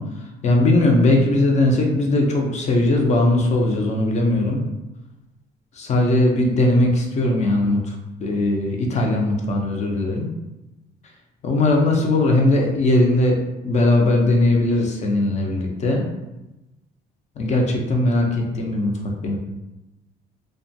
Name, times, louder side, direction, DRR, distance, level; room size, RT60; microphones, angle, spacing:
voice 1, 0.0-4.6 5.7-10.3 11.4-13.4 13.6-16.1 17.4-18.9 19.2-19.4, left 2 dB, 45° left, 1 dB, 0.5 m, -19 dB
2.4 x 2.2 x 2.6 m, 0.96 s
cardioid pair, 110°, 17 cm